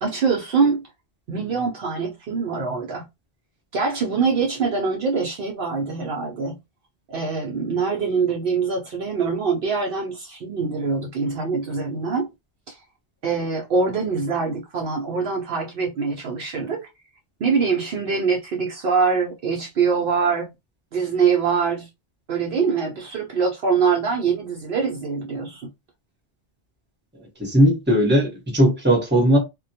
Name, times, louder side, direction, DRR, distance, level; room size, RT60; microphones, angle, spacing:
voice 1, 0.0-0.8 1.3-3.1 3.7-6.5 7.1-12.3 12.7-12.8 13.2-16.8 17.4-20.5 20.9-21.9 22.3-25.7, right 5 dB, 65° right, 0.7 m, -24 dB
voice 2, 27.4-29.4, equal, 10° right, 0.8 m, -18 dB
2.2 x 2.1 x 2.6 m
omnidirectional pair, 1.1 m